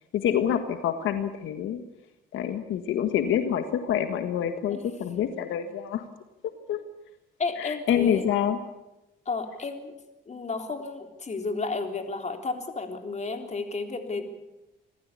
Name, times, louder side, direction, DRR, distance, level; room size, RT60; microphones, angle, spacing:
voice 1, 0.1-1.8 2.3-6.0 6.7-6.8 7.6-8.6, left 9 dB, 85° left, 8 dB, 1.7 m, -27 dB
voice 2, 7.4-8.3 9.3-9.9 10.3-14.3, left 3 dB, 35° left, 5 dB, 3.7 m, -32 dB
26.5 x 15.0 x 8.5 m, 0.97 s
cardioid pair, 90°, 20 cm